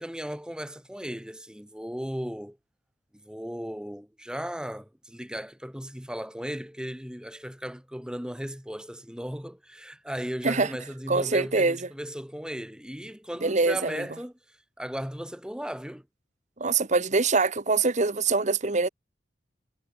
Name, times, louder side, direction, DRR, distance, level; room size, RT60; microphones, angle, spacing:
voice 1, 0.0-2.6 3.1-16.1, equal, 5° right, 2.3 m, -36 dB
voice 2, 11.1-11.8 13.4-14.1 16.6-18.9, right 3 dB, 40° right, 1.2 m, -24 dB
head